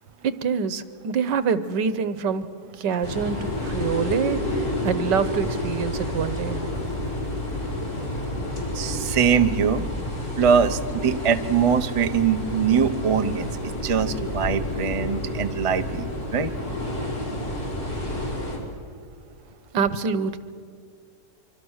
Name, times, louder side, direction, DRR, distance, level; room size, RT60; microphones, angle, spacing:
voice 1, 0.2-6.6 19.7-20.4, right 6 dB, 75° right, 13 dB, 1.6 m, -26 dB
sound 1, 3.0-18.6, left 1 dB, 50° left, 5.3 m, -29 dB
voice 2, 8.4-9.9 10.4-13.5 13.8-16.1 16.3-16.5 17.0-17.1, right 7 dB, 55° right, 8 dB, 0.3 m, -22 dB
25.0 x 24.5 x 6.5 m, 2.2 s
omnidirectional pair, 1.9 m